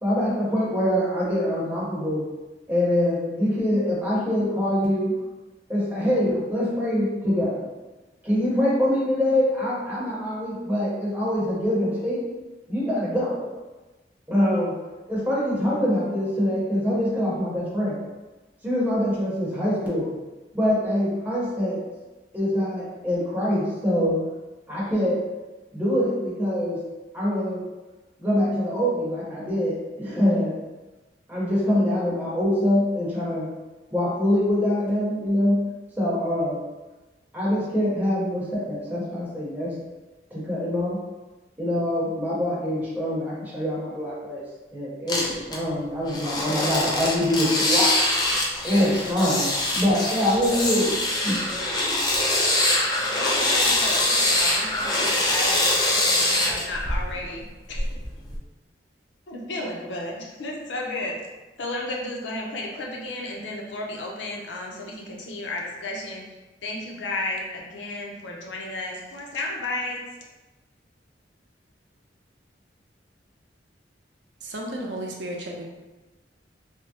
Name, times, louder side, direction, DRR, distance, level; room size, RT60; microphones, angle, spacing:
voice 1, 0.0-2.3 2.7-5.1 5.7-7.7 8.2-12.3 12.7-13.4 14.3-14.7 15.1-18.0 18.6-20.1 20.5-21.8 22.3-24.2 24.7-25.2 25.7-26.8 27.1-27.6 28.2-30.6 31.3-33.5 33.9-35.6 36.0-36.6 37.3-39.7 40.3-41.0 41.6-44.4 44.7-47.9 48.3-50.9 51.2-51.4, left 1 dB, 10° right, -8 dB, 1.0 m, -24 dB
sound 1, 45.1-45.5 46.1-57.2 57.7-58.4, left 1 dB, 25° left, 0.5 m, -23 dB
voice 2, 53.2-57.9 59.3-61.2 61.6-66.2 66.6-70.0, left 2 dB, 80° left, -1 dB, 0.6 m, -33 dB
voice 3, 74.4-75.6, right 1 dB, 75° right, 0 dB, 0.5 m, -33 dB
3.4 x 2.0 x 2.7 m, 1.1 s
head